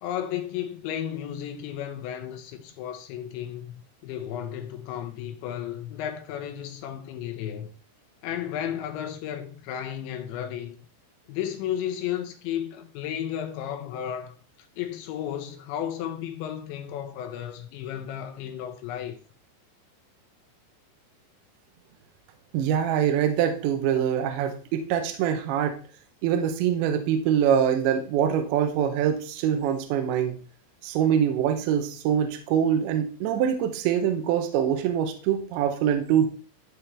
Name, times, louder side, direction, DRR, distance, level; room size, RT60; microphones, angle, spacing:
voice 1, 0.0-7.7 8.2-10.8 11.3-14.4 14.8-19.2, left 10 dB, 80° left, 3.0 m, -33 dB
voice 2, 22.5-25.8 26.2-30.4 30.8-36.3, right 9 dB, 75° right, 2.9 m, -24 dB
12.5 x 4.3 x 3.3 m
omnidirectional pair, 5.5 m